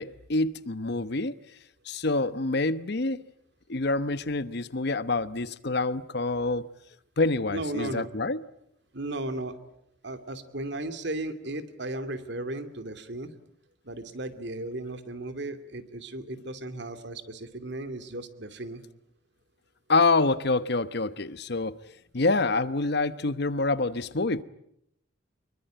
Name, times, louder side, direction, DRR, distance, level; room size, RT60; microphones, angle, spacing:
voice 1, 0.0-1.4 1.9-3.2 3.7-6.7 7.2-8.4 19.9-21.8 22.1-24.4, left 3 dB, 60° left, 1.0 m, -26 dB
voice 2, 7.5-8.1 8.9-9.6 10.0-13.3 13.8-18.8, right 2 dB, 60° right, 2.6 m, -35 dB
25.5 x 23.0 x 9.1 m
head